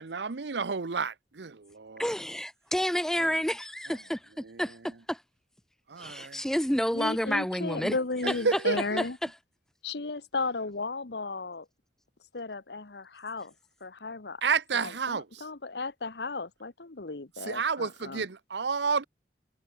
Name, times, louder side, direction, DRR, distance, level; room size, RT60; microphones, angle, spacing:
voice 1, 0.0-2.1 3.2-3.3 3.9-4.0 4.4-4.8 5.9-6.4 8.2-9.0 14.4-15.5 17.4-19.0, right 5 dB, 70° right, 0.8 m, -31 dB
voice 2, 2.0-5.2 6.0-8.0 8.3-8.4, equal, 5° left, 0.5 m, -30 dB
voice 3, 6.9-9.2 9.8-11.7 12.3-13.5 13.8-14.4 14.7-18.3, left 3 dB, 65° left, 1.2 m, -35 dB
head